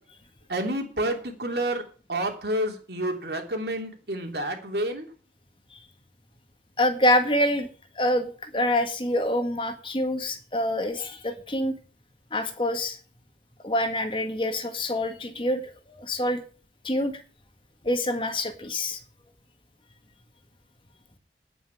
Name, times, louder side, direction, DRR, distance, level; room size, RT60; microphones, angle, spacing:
voice 1, 0.5-1.8 2.1-5.1, right 1 dB, 65° right, 4 dB, 3.1 m, -29 dB
voice 2, 6.8-7.7 7.9-11.7 12.3-13.0 13.6-16.4 16.8-17.2 17.8-19.0, left 1 dB, 30° left, 7 dB, 1.7 m, -26 dB
10.0 x 9.5 x 6.3 m, 0.39 s
head